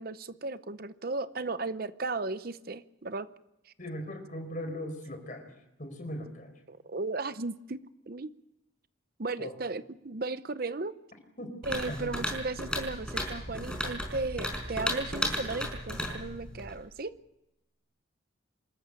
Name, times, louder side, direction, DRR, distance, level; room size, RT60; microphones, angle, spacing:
voice 1, 0.0-3.3 3.7-3.8 6.7-7.8 8.1-8.3 9.2-10.9 11.6-17.1, right 3 dB, 50° right, 13 dB, 0.7 m, -35 dB
voice 2, 3.8-5.5 5.8-6.6 9.4-9.6 11.4-11.6 11.9-12.1, equal, 40° left, 6 dB, 4.7 m, -39 dB
sound 1, 11.6-16.8, left 1 dB, 5° left, 4.9 m, -35 dB
26.5 x 14.0 x 8.9 m, 0.90 s
head